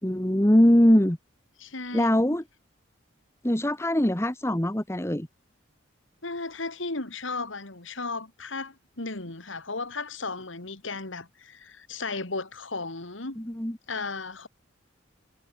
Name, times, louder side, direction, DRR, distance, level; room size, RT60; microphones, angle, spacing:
voice 1, 0.0-1.2 1.9-2.4 3.4-5.3 13.4-13.8, equal, 15° left, 1.2 m, -22 dB
voice 2, 1.6-2.1 6.2-13.4 13.9-14.5, left 3 dB, 85° left, 3.0 m, -35 dB
head